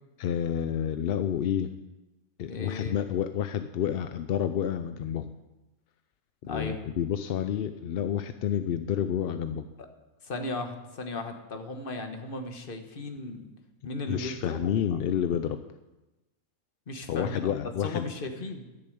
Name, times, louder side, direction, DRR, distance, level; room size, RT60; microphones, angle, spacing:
voice 1, 0.2-1.7 2.4-5.3 6.5-9.7 14.1-15.6 17.1-18.1, left 9 dB, 65° left, 10 dB, 0.6 m, -29 dB
voice 2, 2.5-2.9 6.4-6.8 9.8-9.9 10.2-13.5 13.8-15.0 16.9-17.5 17.8-18.6, left 2 dB, 45° left, 6 dB, 1.4 m, -36 dB
11.5 x 6.8 x 7.8 m, 1.0 s
omnidirectional pair, 1.3 m